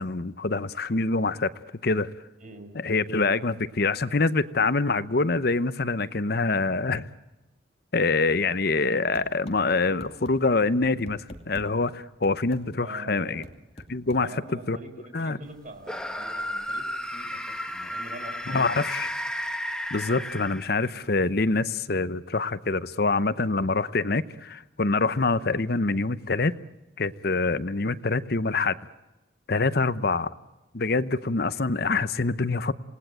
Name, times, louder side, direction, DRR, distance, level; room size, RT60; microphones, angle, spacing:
voice 1, 0.0-1.5 1.8-2.1 2.7-7.1 7.9-13.4 13.9-14.3 14.7-14.8 15.1-15.4 18.5-19.1 19.9-26.5 27.0-28.8 29.5-30.3 30.7-32.7, left 3 dB, 50° left, 0.8 m, -25 dB
voice 2, 2.4-2.7 12.8-13.4 14.2-18.8, right 1 dB, 40° right, 6.0 m, -44 dB
sound 1, 9.1-9.6 10.0-10.3 10.8-11.7 12.2-12.6 13.4-14.2, left 1 dB, 30° left, 2.6 m, -43 dB
sound 2, 15.8-21.0, equal, 5° left, 1.1 m, -33 dB
27.5 x 19.5 x 9.0 m
head